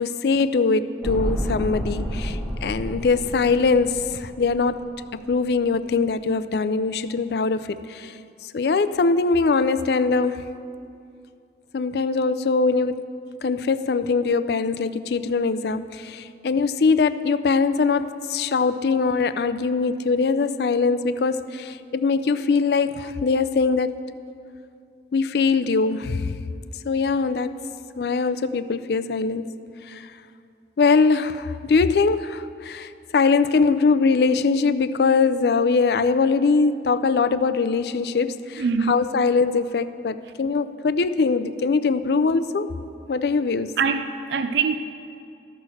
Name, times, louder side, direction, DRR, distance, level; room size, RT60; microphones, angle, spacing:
voice 1, 0.0-4.8 5.1-8.2 8.5-10.4 11.7-13.0 13.4-24.0 25.1-26.4 26.8-27.5 28.0-29.5 29.9-30.1 30.8-42.8 43.1-43.8, left 4 dB, 65° left, 12 dB, 0.4 m, -22 dB
sound 1, 1.0-5.3 5.6-5.7, equal, 5° left, 1.4 m, -30 dB
voice 2, 38.6-39.0 43.8-44.8, right 5 dB, 80° right, 9 dB, 0.4 m, -23 dB
13.5 x 6.4 x 6.3 m, 2.5 s
head